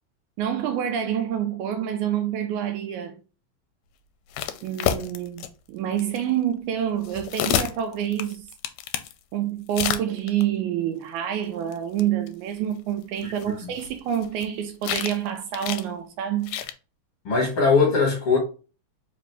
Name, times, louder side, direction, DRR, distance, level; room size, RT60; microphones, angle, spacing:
voice 1, 0.4-3.2 4.6-8.5 9.3-16.6, right 10 dB, 80° right, 1.9 m, -27 dB
sound 1, 4.3-5.5 6.0-6.2 7.0-9.1 9.7-10.4 11.7-11.8 12.0-12.1 12.3-12.4 13.2-14.4 14.8-15.3 15.5-15.8 16.4-16.7, left 10 dB, 85° left, 2.0 m, -28 dB
voice 2, 17.3-18.4, left 4 dB, 50° left, 2.0 m, -20 dB
5.0 x 2.5 x 3.3 m
omnidirectional pair, 3.7 m